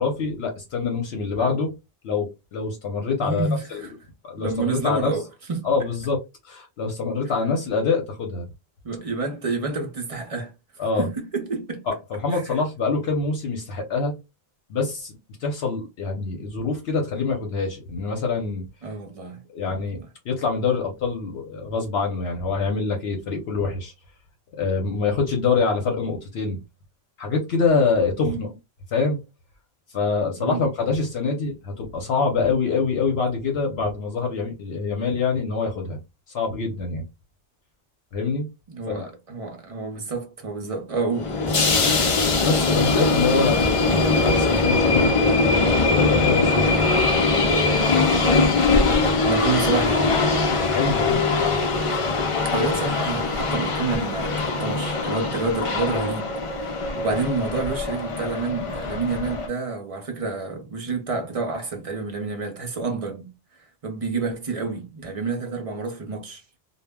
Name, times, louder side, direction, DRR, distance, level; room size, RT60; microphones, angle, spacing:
voice 1, 0.0-1.7 2.0-3.9 4.2-5.1 5.6-6.2 6.4-8.5 10.8-11.1 11.9-14.1 14.7-18.6 19.5-23.9 24.5-26.6 27.2-28.5 28.9-29.2 29.9-36.0 36.3-37.0 38.1-38.5 38.9-39.1 42.4-46.7 50.7-51.2, left 4 dB, 75° left, 0.9 m, -25 dB
voice 2, 3.2-3.9 4.4-5.2 5.5-5.7 8.8-10.5 11.0-11.8 12.3-12.6 18.8-19.4 19.7-20.0 28.2-28.4 30.4-30.6 38.7-42.1 49.2-50.1 52.5-56.7 57.0-63.3 63.8-66.4, right 4 dB, 40° right, 0.6 m, -29 dB
sound 1, 41.1-59.5, left 3 dB, 45° left, 0.4 m, -21 dB
2.2 x 2.1 x 3.4 m
omnidirectional pair, 1.1 m